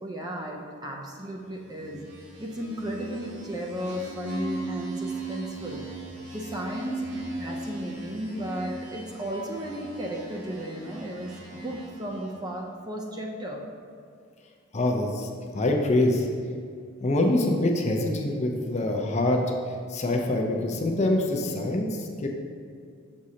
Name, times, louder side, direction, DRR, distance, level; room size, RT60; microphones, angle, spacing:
voice 1, 0.0-2.1 2.4-5.9 6.3-13.6, right 1 dB, 20° right, 0 dB, 0.5 m, -34 dB
sound 1, 1.6-12.5, right 2 dB, 55° right, 1.0 m, -38 dB
voice 2, 14.7-16.2 17.0-19.4 19.9-22.3, left 1 dB, 35° left, 2 dB, 0.6 m, -25 dB
6.3 x 6.1 x 2.8 m, 2.2 s
head